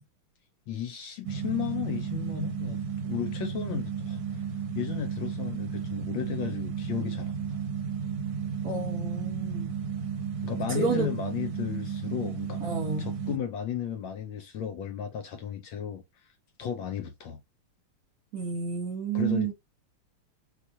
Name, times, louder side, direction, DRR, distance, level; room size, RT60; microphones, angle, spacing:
voice 1, 0.7-2.8 3.0-4.4 4.7-7.6 10.4-12.7 13.0-16.3 16.6-17.4 19.1-19.5, left 8 dB, 75° left, 1.2 m, -34 dB
sound 1, 1.2-13.4, right 6 dB, 70° right, 1.3 m, -33 dB
voice 2, 8.6-9.7 10.7-11.1 12.6-13.1 18.3-19.5, right 5 dB, 50° right, 1.5 m, -30 dB
4.4 x 2.4 x 2.6 m
omnidirectional pair, 2.4 m